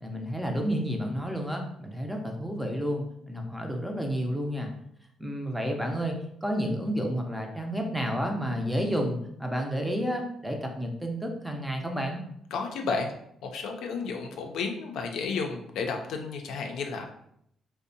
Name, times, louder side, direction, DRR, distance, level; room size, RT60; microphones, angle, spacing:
voice 1, 0.0-4.7 5.2-6.2 6.4-12.2, equal, 5° right, 2 dB, 0.5 m, -30 dB
voice 2, 12.5-13.1 13.4-17.1, left 4 dB, 80° left, 3 dB, 0.4 m, -32 dB
2.6 x 2.1 x 2.6 m, 0.73 s
cardioid pair, 90°, 0 cm